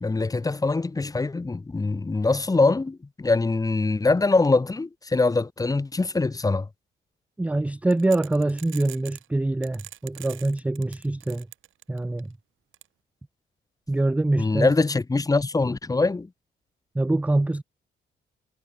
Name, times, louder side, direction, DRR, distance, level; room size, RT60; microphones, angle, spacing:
voice 1, 0.0-6.7 14.4-16.3, left 3 dB, 20° left, 1.0 m, -23 dB
voice 2, 7.4-11.5 11.9-12.3 13.9-14.7 16.9-17.6, right 2 dB, 5° right, 0.4 m, -24 dB
sound 1, 7.9-9.3 9.6-12.2 12.7-12.8, right 13 dB, 80° right, 3.7 m, -42 dB
cardioid pair, 90°, 20 cm